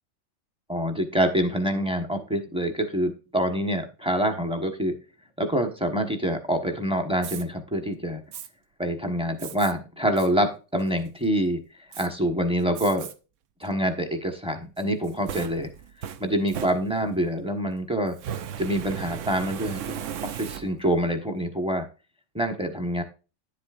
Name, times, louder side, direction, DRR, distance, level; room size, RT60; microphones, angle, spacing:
voice 1, 0.7-4.9 5.4-8.2 8.8-11.6 12.0-13.1 13.6-15.7 16.2-18.2 18.6-21.9 22.3-23.0, equal, 5° right, 5 dB, 1.0 m, -26 dB
Fire, 7.2-7.4 8.3-8.5 9.4-9.7 10.2-10.3 10.8-11.3 11.9-12.1 12.8-13.1 13.6-13.7 14.8-17.3 18.1-21.0, right 9 dB, 65° right, 0.9 m, -37 dB
10.5 x 7.7 x 2.5 m, 0.32 s
omnidirectional pair, 1.6 m